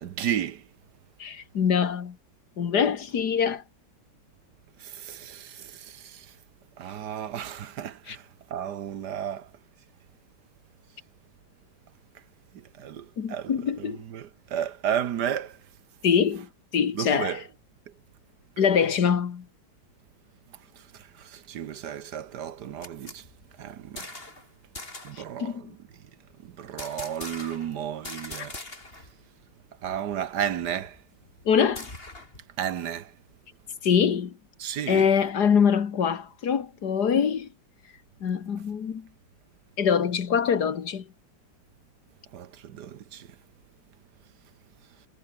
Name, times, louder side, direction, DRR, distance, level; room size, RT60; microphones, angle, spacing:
voice 1, 0.0-0.7 4.8-6.4 6.8-9.5 12.5-15.6 16.9-17.5 17.9-18.0 20.7-23.3 23.6-24.1 25.0-26.0 26.4-28.6 29.8-31.0 32.6-33.1 34.6-35.1 42.3-43.4, right 9 dB, 65° right, 1.5 m, -33 dB
voice 2, 1.2-2.2 2.6-3.6 8.1-8.2 13.2-14.0 16.0-17.4 18.6-19.5 25.2-25.6 31.5-31.9 33.8-34.3 34.9-37.5 38.2-39.1 39.8-41.1, left 7 dB, 60° left, 2.0 m, -24 dB
sound 1, 22.5-24.5 24.7-25.2 26.8-27.7 28.0-29.1 29.4-29.5 29.8-32.4, left 2 dB, 30° left, 4.3 m, -42 dB
omnidirectional pair, 2.0 m